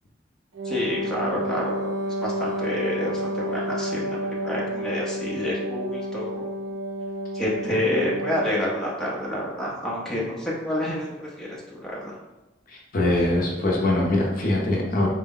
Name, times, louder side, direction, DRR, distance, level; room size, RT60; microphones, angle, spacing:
Wind instrument woodwind instrument, 0.5-8.7, equal, 85° right, 0.6 m, -30 dB
voice 1, 0.6-6.5 7.3-12.2, left 1 dB, 5° left, -6 dB, 0.7 m, -28 dB
voice 2, 12.9-15.1, left 1 dB, 50° left, -2 dB, 0.6 m, -22 dB
3.9 x 2.1 x 3.7 m, 1.0 s
head